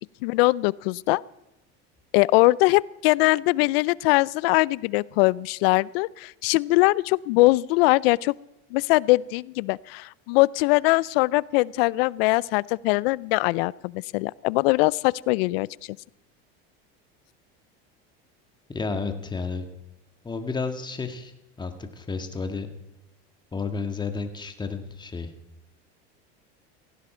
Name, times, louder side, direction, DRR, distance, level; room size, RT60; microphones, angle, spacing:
voice 1, 0.2-1.2 2.1-8.3 8.7-15.7, left 22 dB, 75° left, 23 dB, 0.5 m, -22 dB
voice 2, 18.7-19.6 20.2-21.3 21.6-22.7 23.5-25.3, left 4 dB, 15° left, 7 dB, 1.8 m, -31 dB
17.0 x 16.0 x 4.4 m, 0.92 s
supercardioid pair, 120°, 30 cm